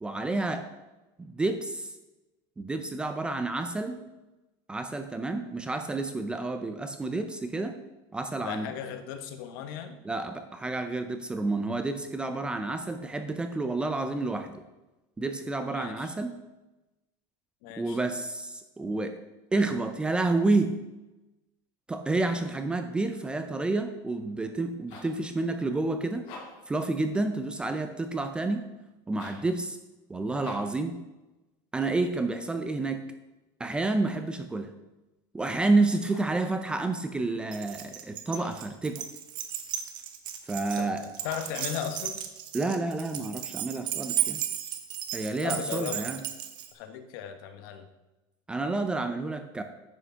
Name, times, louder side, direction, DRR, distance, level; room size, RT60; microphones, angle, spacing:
voice 1, 0.0-0.7 1.2-1.9 2.6-4.1 4.7-7.8 8.1-8.7 10.0-14.6 15.2-16.4 17.8-19.2 19.5-20.8 21.9-26.3 26.7-28.7 29.1-29.8 30.1-31.0 31.7-33.0 33.6-34.7 35.3-39.0 40.5-41.0 42.5-44.4 45.1-46.2 48.5-49.6, right 2 dB, 10° right, 7 dB, 0.4 m, -29 dB
voice 2, 8.4-10.0 15.7-16.1 17.6-18.0 40.8-42.2 45.4-46.1 46.7-47.9, left 9 dB, 65° left, 8 dB, 1.2 m, -37 dB
sound 1, 24.7-25.2 26.1-26.7 29.1-29.5 30.4-30.8 35.9-36.4 38.3-38.7 41.2-41.7, left 3 dB, 50° left, 2.9 m, -47 dB
Keys jangling, 37.5-46.7, right 11 dB, 40° right, 0.9 m, -35 dB
9.6 x 6.3 x 5.6 m, 1.0 s
cardioid pair, 175°, 12 cm